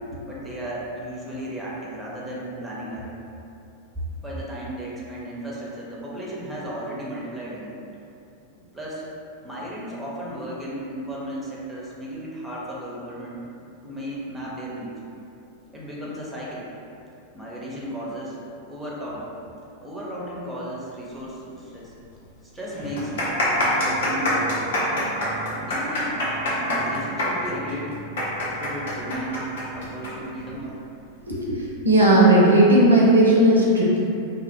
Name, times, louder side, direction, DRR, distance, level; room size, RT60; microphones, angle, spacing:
voice 1, 0.2-3.1 3.9-7.8 8.6-9.0 9.4-13.4 13.8-15.0 15.7-16.7 17.3-18.4 18.6-19.3 19.8-21.9 22.5-23.2 23.8-24.7 25.6-26.2 26.5-28.0 28.6-29.5 29.7-30.8, equal, 10° right, -6 dB, 0.5 m, -34 dB
sound 1, 21.8-21.9 22.1-22.2 22.8-30.1 30.4-30.5 31.2-31.5, left 1 dB, 60° left, 0.6 m, -25 dB
sound 2, 22.7-31.0, right 6 dB, 35° left, 0.9 m, -39 dB
voice 2, 31.3-34.0, right 1 dB, 75° right, -4 dB, 0.4 m, -16 dB
2.4 x 2.0 x 2.6 m, 2.7 s
figure-of-eight pair, 90°, 0 cm